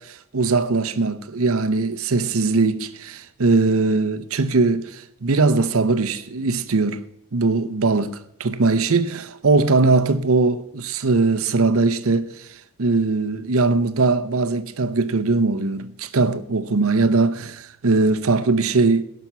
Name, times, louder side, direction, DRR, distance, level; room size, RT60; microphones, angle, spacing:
voice 1, 0.0-7.0 7.3-12.5 12.8-19.0, right 3 dB, 85° right, 0.8 m, -20 dB
11.5 x 6.0 x 8.2 m
head